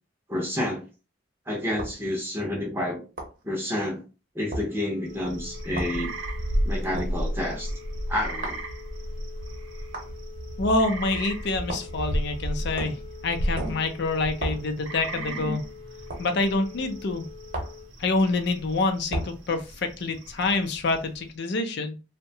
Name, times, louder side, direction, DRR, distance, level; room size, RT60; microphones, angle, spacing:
voice 1, 0.3-0.8 1.5-3.0 3.4-4.0 4.3-6.1 6.6-7.7 8.1-8.6 15.3-15.6, left 1 dB, 10° right, -2 dB, 0.5 m, -29 dB
sound 1, 1.8-2.0 3.2-3.4 4.5-4.7 5.8-6.0 7.0-7.2 8.4-8.7 9.9-10.1 11.7-12.0 12.8-13.1 13.6-13.9 14.4-14.7 16.1-16.3 17.5-17.8 19.1-19.4, right 1 dB, 45° right, 0.8 m, -33 dB
Telephone, 4.7-17.9, left 6 dB, 30° left, 0.8 m, -46 dB
sound 2, 5.1-21.3, right 1 dB, 80° right, 0.6 m, -34 dB
voice 2, 10.6-15.7 16.2-17.3 18.0-22.0, left 3 dB, 60° left, 6 dB, 0.5 m, -27 dB
2.7 x 2.1 x 2.7 m, 0.31 s
head